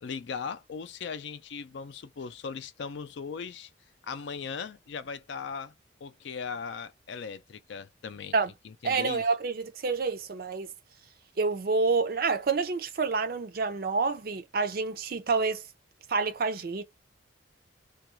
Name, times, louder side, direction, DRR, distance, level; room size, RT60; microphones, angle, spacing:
voice 1, 0.0-3.7 4.0-5.7 6.0-8.3 8.6-9.2, left 5 dB, 65° left, 0.4 m, -38 dB
voice 2, 8.8-10.7 11.4-15.6 16.1-16.8, right 4 dB, 50° right, 0.4 m, -28 dB
2.4 x 2.3 x 3.0 m
head